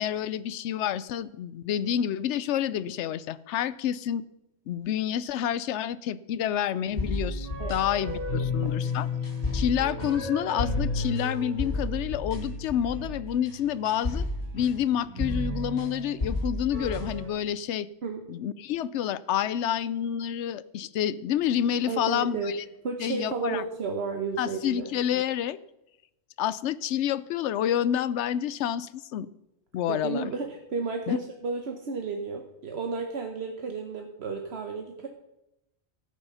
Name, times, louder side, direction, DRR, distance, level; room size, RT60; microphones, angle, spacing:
voice 1, 0.0-4.2 4.7-9.1 9.5-14.3 14.5-17.9 18.3-22.6 23.0-23.6 24.4-25.6 26.4-29.3 29.7-30.2 31.1-31.2, left 10 dB, 80° left, 17 dB, 0.9 m, -28 dB
sound 1, 6.9-17.3, left 2 dB, 50° left, 3.0 m, -31 dB
voice 2, 8.3-8.7 18.0-18.2 21.9-24.9 29.9-35.1, right 4 dB, 65° right, 4 dB, 1.2 m, -33 dB
13.0 x 8.4 x 5.6 m, 0.90 s
omnidirectional pair, 1.2 m